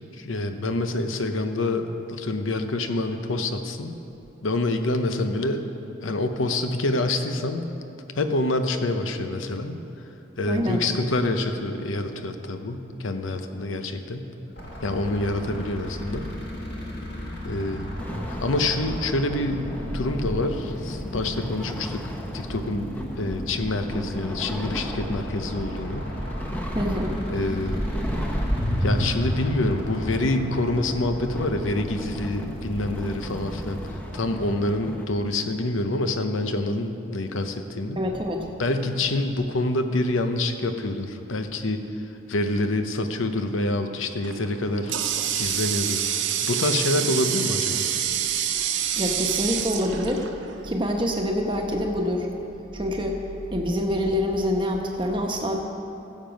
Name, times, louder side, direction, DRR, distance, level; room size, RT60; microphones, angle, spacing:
voice 1, 0.2-3.9 4.4-5.6 6.0-7.7 8.1-9.8 10.4-14.3 14.8-16.3 17.4-17.9 18.3-26.1 27.3-27.8 28.8-38.0 38.6-41.8 42.3-44.9 45.4-46.0 46.4-47.9, left 2 dB, 85° left, 7 dB, 0.8 m, -26 dB
voice 2, 10.5-10.8 26.7-27.2 38.0-38.5 47.0-47.1 49.0-50.3 50.6-52.3 52.7-53.2 53.5-55.6, equal, 25° right, 1 dB, 1.0 m, -26 dB
sound 1, 14.5-33.9, equal, 55° left, 2.0 m, -37 dB
sound 2, 18.0-35.0, equal, 10° left, 0.7 m, -32 dB
Water tap faucet, 44.2-50.7, right 9 dB, 75° right, 0.6 m, -27 dB
15.0 x 7.5 x 5.2 m, 2.8 s
head